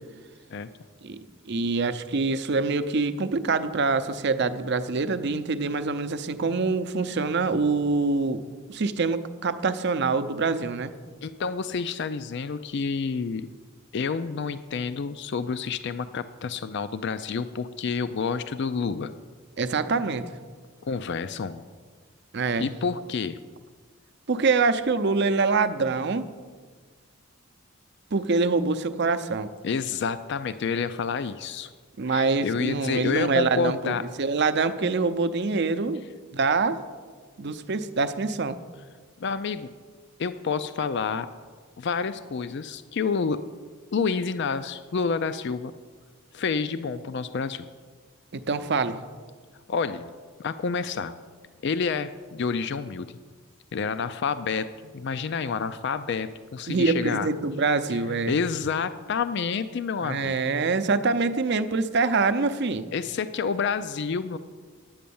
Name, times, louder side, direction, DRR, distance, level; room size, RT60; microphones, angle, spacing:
voice 1, 1.0-8.4 8.7-10.9 19.6-20.3 22.3-22.7 24.3-26.3 28.1-29.5 32.0-36.0 36.3-36.8 37.4-38.6 48.3-49.0 56.7-58.4 60.0-62.8, right 4 dB, 55° right, 11 dB, 0.6 m, -25 dB
voice 2, 11.2-13.5 13.9-19.1 20.8-21.6 22.6-23.4 29.6-31.7 32.1-34.0 39.2-39.7 40.2-41.3 41.8-43.4 43.9-45.7 46.3-47.7 49.7-50.1 50.4-51.1 51.6-53.2 53.7-57.3 57.9-58.0 58.3-60.5 62.9-64.4, left 5 dB, 55° left, 12 dB, 0.4 m, -29 dB
10.5 x 8.4 x 7.0 m, 1.5 s
head